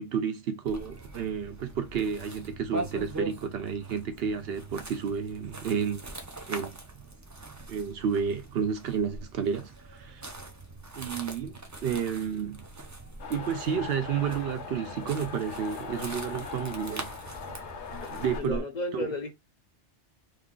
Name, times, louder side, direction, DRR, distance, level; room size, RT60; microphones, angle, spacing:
voice 1, 0.0-6.0 6.5-6.8 7.7-10.2 11.0-12.6 13.3-17.1 18.1-18.6 18.9-19.1, right 7 dB, 65° right, 0.8 m, -31 dB
sound 1, 0.7-18.6, right 2 dB, 25° right, 0.3 m, -42 dB
sound 2, 13.2-18.4, left 6 dB, 75° left, 1.0 m, -40 dB
voice 2, 17.9-19.3, left 2 dB, 50° left, 0.6 m, -34 dB
3.1 x 2.3 x 3.6 m
omnidirectional pair, 1.2 m